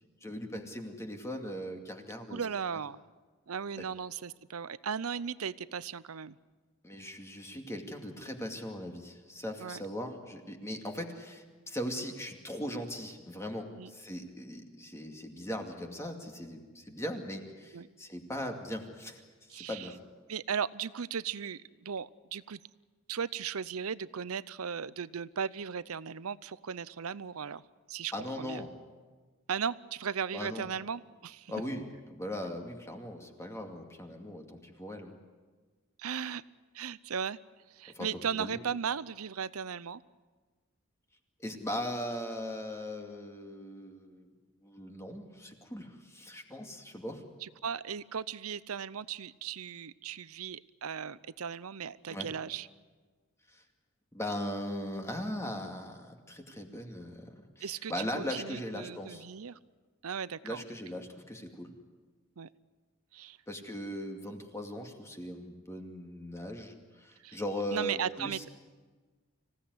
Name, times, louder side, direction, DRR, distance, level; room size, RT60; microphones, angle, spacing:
voice 1, 0.2-2.4 6.8-20.0 28.1-28.7 30.3-30.7 31.5-35.1 37.9-38.1 38.4-38.6 41.4-44.3 44.6-47.2 52.1-52.3 53.5-53.6 54.1-59.2 60.4-61.7 63.5-68.4, equal, 15° left, 3 dB, 2.4 m, -39 dB
voice 2, 2.3-3.0 3.5-6.4 9.6-9.8 13.8-13.9 17.7-17.9 19.5-19.9 20.3-22.6 23.1-27.6 27.9-28.1 28.4-28.6 29.5-31.5 36.0-36.4 36.7-37.4 37.7-40.0 47.4-52.7 57.6-59.6 60.0-60.6 62.4-62.5 63.1-63.4 67.2-67.4 67.7-68.5, right 7 dB, 85° right, 18 dB, 0.7 m, -37 dB
26.0 x 17.0 x 9.6 m, 1.4 s
head